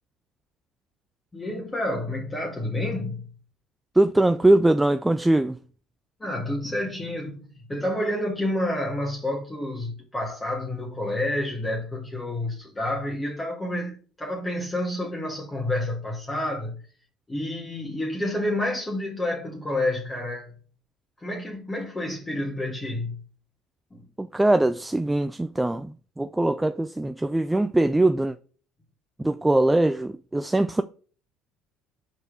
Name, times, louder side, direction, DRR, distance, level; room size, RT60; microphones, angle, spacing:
voice 1, 1.3-3.3 6.2-16.8 17.3-20.5 21.2-23.2 23.9-24.0, left 1 dB, 20° left, 1.6 m, -29 dB
voice 2, 4.0-5.6 24.2-25.9 26.2-28.3 29.2-30.8, right 1 dB, 10° right, 0.3 m, -21 dB
4.9 x 4.4 x 4.9 m
hypercardioid pair, 65°, 0 cm